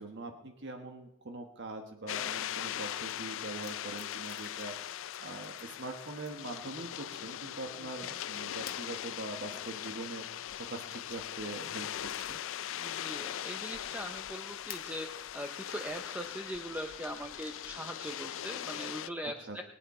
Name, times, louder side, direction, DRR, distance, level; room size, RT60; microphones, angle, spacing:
voice 1, 0.0-12.4 19.5-19.6, right 2 dB, 60° right, 5 dB, 1.3 m, -43 dB
sound 1, 2.1-19.1, left 11 dB, 65° left, 0.4 m, -40 dB
sound 2, 3.0-3.1 3.6-4.8 5.1-5.7 6.2-6.6 8.6-8.9 10.8-11.2 11.7-12.6 13.0-13.1 14.7-14.9 16.1-16.2 18.2-18.7, left 9 dB, 50° left, 1.1 m, -50 dB
voice 2, 12.8-19.6, equal, 10° right, 5 dB, 0.7 m, -41 dB
22.0 x 9.1 x 4.3 m, 0.90 s
head